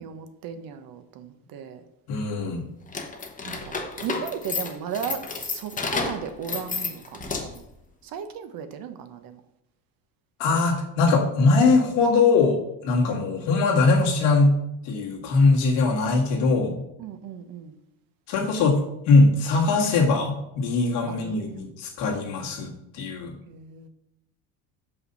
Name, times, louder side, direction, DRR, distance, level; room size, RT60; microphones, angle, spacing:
voice 1, 0.0-1.8 3.5-7.6 8.0-9.4 13.1-13.3 17.0-17.8 21.1-21.6 23.5-23.9, right 7 dB, 55° right, 8 dB, 1.0 m, -36 dB
voice 2, 2.1-2.6 10.4-14.5 14.8-16.7 18.3-23.3, left 3 dB, 80° left, 0 dB, 2.1 m, -21 dB
sound 1, 2.9-7.7, left 4 dB, 20° left, 1.0 m, -31 dB
6.4 x 5.6 x 5.5 m, 0.83 s
cardioid pair, 125°, 41 cm